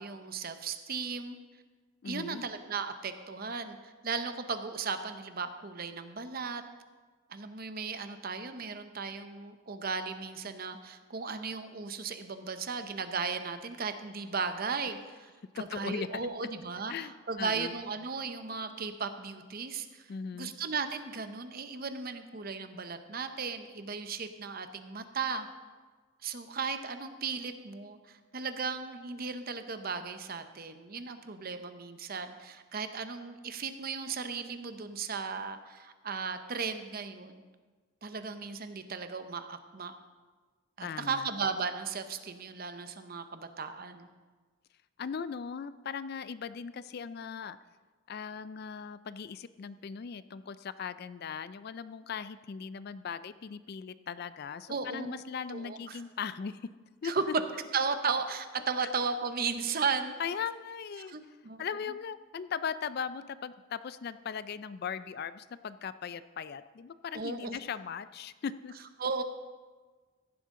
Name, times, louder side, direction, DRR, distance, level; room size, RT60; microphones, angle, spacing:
voice 1, 0.0-1.4 2.0-6.6 7.3-15.3 15.6-20.1 20.3-25.5 26.2-37.4 38.0-40.0 40.8-44.1 54.7-55.2 55.5-56.0 57.0-57.2 57.7-60.2 61.0-61.6 67.1-67.6 69.0-69.2, right 5 dB, 45° right, 9 dB, 0.7 m, -36 dB
voice 2, 2.0-2.4 15.5-16.1 16.9-17.7 20.1-20.5 40.8-41.3 45.0-47.6 48.1-56.6 57.0-57.1 58.8-58.9 60.2-61.1 61.6-68.7, left 6 dB, 45° left, 14 dB, 0.3 m, -39 dB
15.5 x 11.0 x 3.7 m, 1.4 s
head